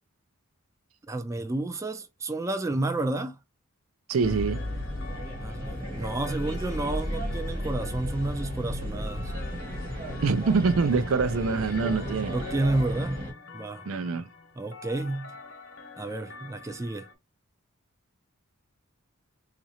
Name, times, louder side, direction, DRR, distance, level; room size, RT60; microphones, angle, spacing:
voice 1, 1.1-3.4 5.4-9.3 12.3-13.2 13.5-13.8 14.6-15.3 16.0-17.1, right 2 dB, 15° right, 0.3 m, -31 dB
voice 2, 4.1-4.6 10.2-12.4 13.9-14.3, right 4 dB, 75° right, 0.4 m, -25 dB
sound 1, 4.2-17.1, left 4 dB, 65° left, 1.0 m, -47 dB
sound 2, 4.2-13.3, equal, 40° right, 1.2 m, -34 dB
4.1 x 2.5 x 2.8 m
head